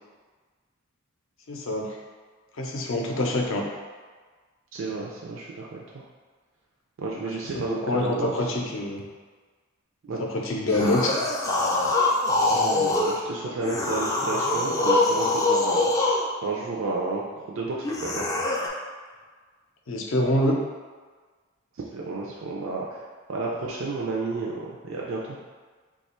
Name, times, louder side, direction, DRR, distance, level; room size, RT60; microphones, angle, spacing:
voice 1, 1.5-2.0 2.5-3.6 7.2-9.0 10.2-11.2 19.9-20.6, left 1 dB, 65° left, 0 dB, 0.5 m, -26 dB
voice 2, 4.7-6.0 7.0-8.3 10.0-10.2 12.4-15.9 16.4-18.3 21.9-23.0 23.3-25.4, right 3 dB, 65° right, -4 dB, 0.4 m, -31 dB
sound 1, 10.7-13.2 13.6-16.3 17.8-18.7, left 2 dB, 15° left, 0.3 m, -24 dB
2.9 x 2.3 x 4.2 m, 1.4 s
head